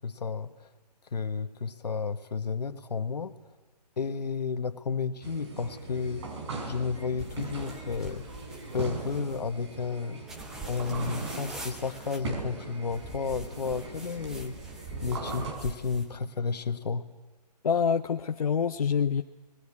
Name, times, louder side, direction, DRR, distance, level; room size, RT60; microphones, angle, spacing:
voice 1, 0.0-0.7 1.1-3.4 4.0-6.3 6.7-8.2 8.7-10.2 10.7-14.5 15.0-17.1, left 5 dB, 75° left, 9 dB, 1.6 m, -32 dB
sound 1, 5.2-15.5, right 3 dB, 40° right, 4.9 m, -39 dB
sound 2, 7.2-9.5 10.3-12.2 12.9-16.1, right 2 dB, ahead, 0.7 m, -44 dB
voice 2, 17.6-19.2, left 7 dB, 60° left, 7 dB, 0.8 m, -26 dB
26.0 x 20.0 x 8.7 m, 1.3 s
hypercardioid pair, 165°, 21 cm